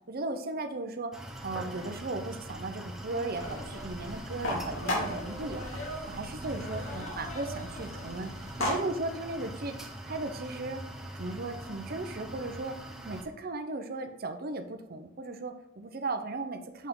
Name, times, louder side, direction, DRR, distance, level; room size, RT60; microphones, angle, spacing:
voice 1, 0.1-1.1 1.4-5.8 6.1-8.3 8.6-10.8 11.2-16.9, right 2 dB, 50° right, 7 dB, 0.7 m, -36 dB
sound 1, 1.1-13.2, right 1 dB, ahead, 0.9 m, -42 dB
sound 2, 3.3-8.7, left 1 dB, 90° left, 2.6 m, -36 dB
7.5 x 5.7 x 3.8 m, 0.79 s
head